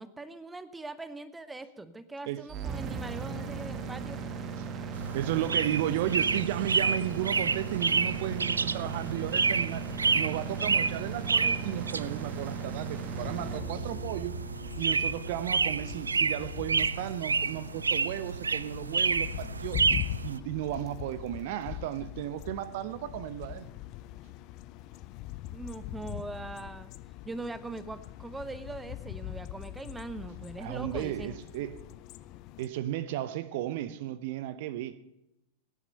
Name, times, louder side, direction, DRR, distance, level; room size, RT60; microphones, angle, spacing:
voice 1, 0.0-4.2 25.5-26.9 27.2-31.4, right 2 dB, 10° right, 0.8 m, -41 dB
sound 1, 2.5-16.4, right 5 dB, 30° right, 1.5 m, -38 dB
sound 2, 4.9-20.4, right 4 dB, 75° right, 0.4 m, -30 dB
voice 2, 5.1-9.8 10.1-14.4 14.8-19.8 20.2-23.7 30.6-31.8 32.6-35.0, right 13 dB, 50° right, 0.8 m, -34 dB
sound 3, 13.1-32.7, left 14 dB, 40° left, 0.6 m, -42 dB
17.0 x 10.0 x 5.6 m
figure-of-eight pair, 90°, 0 cm